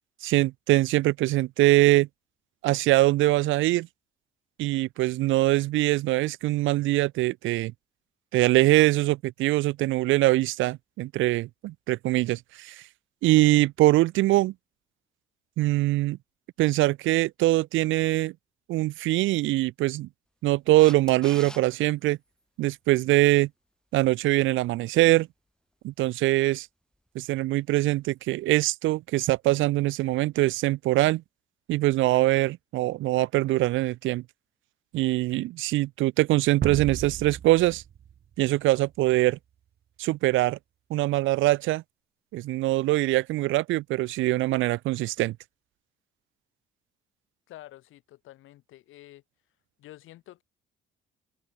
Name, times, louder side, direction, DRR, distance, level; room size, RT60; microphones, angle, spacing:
voice 1, 0.2-2.1 2.6-3.9 4.6-7.7 8.3-12.8 13.2-14.5 15.6-16.2 16.6-18.3 18.7-20.1 20.4-22.2 22.6-23.5 23.9-25.3 25.8-26.7 27.2-31.2 31.7-34.2 34.9-37.8 38.4-39.4 40.0-40.6 40.9-41.8 42.3-45.4, right 17 dB, 80° right, 0.4 m, -23 dB
Camera, 20.8-21.6 28.3-28.4, equal, 5° left, 4.0 m, -43 dB
sound 1, 36.6-39.0, right 9 dB, 55° right, 1.2 m, -35 dB
voice 2, 47.5-49.2 49.8-50.4, left 15 dB, 85° left, 4.4 m, -49 dB
cardioid pair, 90°, 20 cm